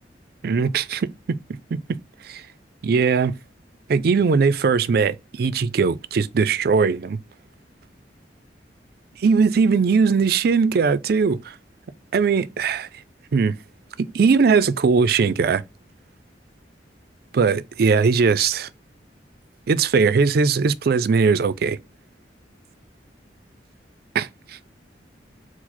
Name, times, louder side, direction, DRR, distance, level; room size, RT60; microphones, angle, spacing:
voice 1, 0.4-1.4 1.7-1.8 2.2-2.4 2.8-3.3 3.9-7.2 9.2-11.5 12.1-12.9 13.3-13.5 14.0-15.6 17.3-18.7 19.7-21.8 24.1-24.6, right 5 dB, 60° right, 0.4 m, -20 dB
4.7 x 2.1 x 4.2 m
head